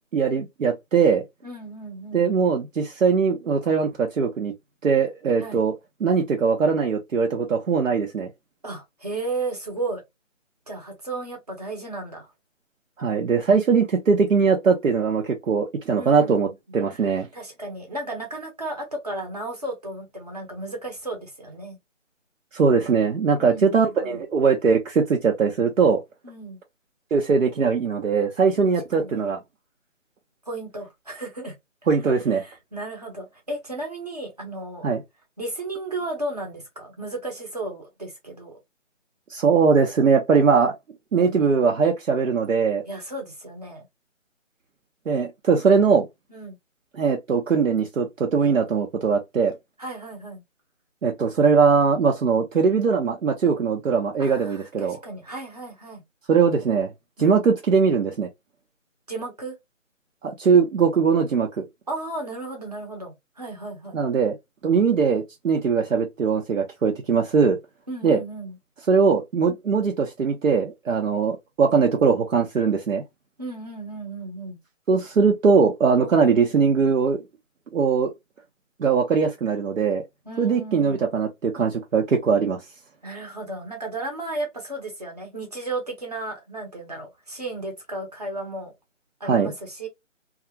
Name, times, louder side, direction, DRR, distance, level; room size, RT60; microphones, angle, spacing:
voice 1, 0.1-1.2 2.1-4.5 4.8-5.7 6.0-8.3 13.0-17.3 22.5-26.0 27.1-29.4 31.9-32.4 34.8-35.0 39.3-40.8 41.1-42.8 45.1-46.1 46.9-49.5 51.0-55.0 56.3-56.9 57.2-58.3 60.2-61.6 63.9-64.4 64.6-67.6 68.0-68.2 68.9-73.0 74.9-77.2 77.7-78.1 78.8-80.0 80.4-82.6 89.2-89.5, right 5 dB, 80° right, 0.7 m, -21 dB
voice 2, 1.4-2.3 5.4-5.6 8.6-10.0 10.7-12.3 15.9-16.5 16.9-21.8 23.4-24.2 26.2-26.6 28.6-29.2 30.5-31.5 32.4-34.9 35.4-38.6 41.1-41.5 42.9-43.8 46.3-46.6 49.8-50.4 54.2-56.0 57.2-57.4 59.1-59.6 61.9-64.0 67.9-68.6 73.4-74.6 80.2-81.0 83.0-88.7 89.2-89.9, right 2 dB, 30° right, 0.8 m, -34 dB
2.4 x 2.4 x 2.7 m
figure-of-eight pair, 170°, 38 cm